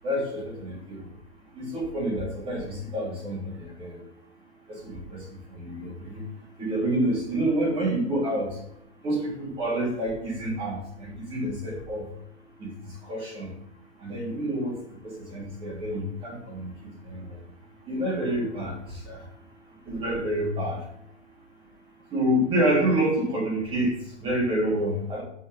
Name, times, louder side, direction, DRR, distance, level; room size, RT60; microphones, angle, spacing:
voice 1, 0.0-1.1 1.5-4.0 4.7-5.2 5.5-6.3 6.6-8.6 9.0-12.1 12.6-13.5 14.0-16.7 17.0-17.4 17.8-19.3 19.9-20.9 22.1-25.2, right 1 dB, 15° right, -4 dB, 3.1 m, -28 dB
14.0 x 5.4 x 3.6 m, 0.73 s
hypercardioid pair, 170°, 36 cm